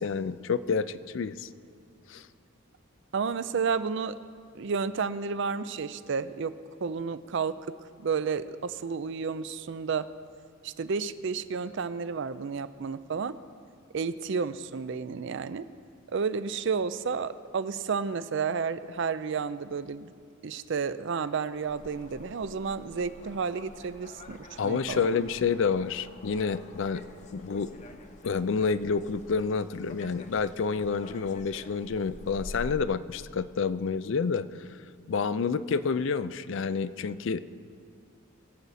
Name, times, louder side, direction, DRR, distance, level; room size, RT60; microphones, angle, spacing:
voice 1, 0.0-1.5 2.1-2.3 24.6-27.0 27.3-27.7 28.2-34.7 35.1-37.4, left 5 dB, 60° left, 15 dB, 0.4 m, -29 dB
voice 2, 3.1-4.2 4.5-6.5 6.8-7.6 8.0-10.1 10.6-13.4 13.9-15.7 16.1-20.1 20.4-24.4 24.6-25.0, right 5 dB, 60° right, 14 dB, 0.4 m, -31 dB
sound 1, 21.7-32.8, left 1 dB, 35° left, 0.8 m, -47 dB
22.5 x 8.0 x 4.2 m, 2.2 s
head